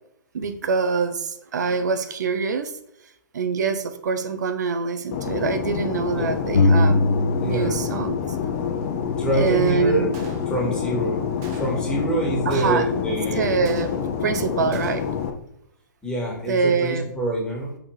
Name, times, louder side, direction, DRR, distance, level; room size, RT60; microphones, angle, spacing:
voice 1, 0.3-2.7 3.3-7.0 7.4-8.2 9.3-10.1 12.5-12.9 13.3-13.9 14.2-15.0 16.5-17.0, right 5 dB, 60° right, 9 dB, 0.8 m, -24 dB
Fixed-wing aircraft airplane, 5.1-15.3, left 7 dB, 40° left, 0.9 m, -27 dB
sound 1, 6.5-8.1 8.3-10.1, left 2 dB, 75° left, 0.7 m, -23 dB
voice 2, 7.4-7.8 9.2-10.1 10.5-11.2 11.5-13.6 16.0-17.8, right 1 dB, 10° left, -2 dB, 2.0 m, -26 dB
Gunshot gunfire, 10.1-10.8 11.4-12.0 12.5-13.1 13.6-14.3 14.7-15.3, right 5 dB, 30° right, 1.0 m, -43 dB
6.0 x 3.7 x 4.7 m, 0.76 s
figure-of-eight pair, 115°, 11 cm